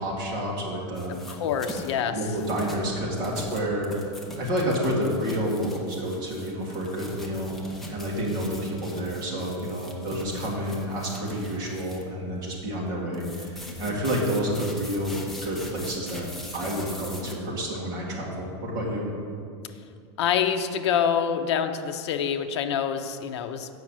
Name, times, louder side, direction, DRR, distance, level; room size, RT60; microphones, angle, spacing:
voice 1, 0.0-1.1 2.1-3.9 4.4-7.5 7.9-16.3 16.5-19.1, equal, 25° right, -4 dB, 2.0 m, -29 dB
sound 1, 0.9-2.0 2.4-12.0 13.1-17.3, equal, ahead, 0.7 m, -41 dB
voice 2, 1.1-2.2 20.2-23.7, left 8 dB, 70° left, 7 dB, 0.7 m, -26 dB
7.6 x 5.6 x 7.4 m, 2.3 s
supercardioid pair, 175°, 15 cm